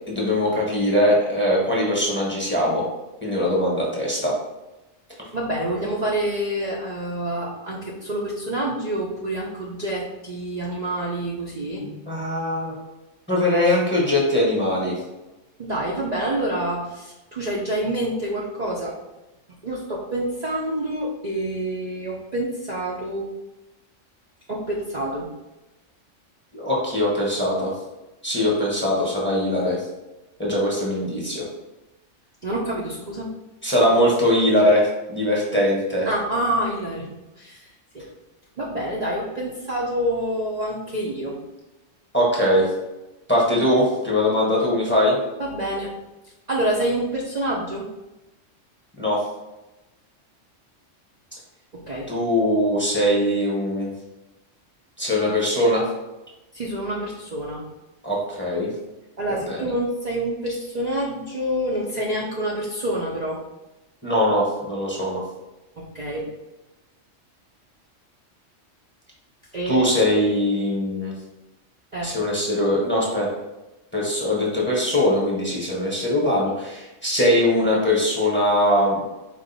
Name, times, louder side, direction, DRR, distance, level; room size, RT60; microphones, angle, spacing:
voice 1, 0.1-2.8 3.2-4.3 11.8-12.7 13.3-14.9 26.5-27.7 28.2-29.8 30.4-31.4 33.6-36.1 42.1-42.7 43.3-45.2 49.0-49.2 52.1-53.9 55.0-55.8 58.0-58.7 59.3-59.6 64.0-65.2 69.6-71.1 72.0-73.3 73.9-79.0, left 1 dB, 10° left, -4 dB, 0.9 m, -21 dB
voice 2, 5.3-11.8 15.6-19.0 19.6-23.3 24.5-25.3 32.4-33.3 36.0-37.7 37.9-38.1 38.6-41.4 45.4-45.9 46.5-47.9 51.7-52.1 56.5-57.6 59.2-63.4 65.8-66.3 69.5-69.9 71.9-72.1, right 1 dB, 45° right, -5 dB, 0.6 m, -27 dB
4.5 x 2.5 x 3.9 m, 1.0 s
omnidirectional pair, 1.3 m